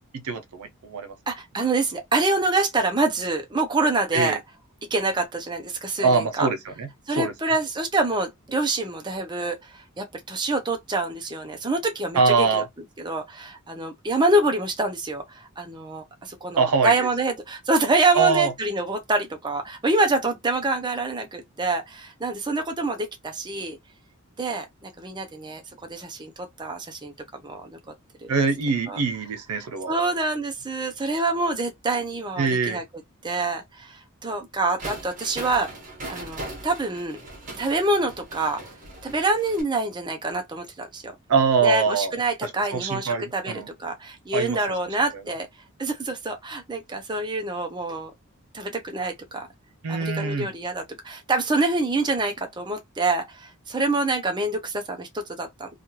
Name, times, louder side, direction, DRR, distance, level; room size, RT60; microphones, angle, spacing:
voice 1, 0.1-1.1 4.1-4.4 6.0-6.9 7.2-7.3 12.1-12.7 16.6-17.1 18.1-18.5 28.3-29.9 32.4-32.8 41.3-43.7 44.3-44.6 49.8-50.5, right 4 dB, 80° right, 0.5 m, -23 dB
voice 2, 1.3-4.4 4.9-6.5 7.1-12.6 13.0-23.8 24.4-27.8 28.2-28.3 28.9-29.0 29.6-32.8 33.2-35.7 36.1-37.2 37.6-38.6 39.0-41.1 41.6-45.5 45.8-48.1 48.5-49.5 49.9-55.7, right 2 dB, 20° right, 0.6 m, -26 dB
sound 1, 34.8-39.6, right 1 dB, 35° right, 1.3 m, -39 dB
3.1 x 2.3 x 3.0 m
head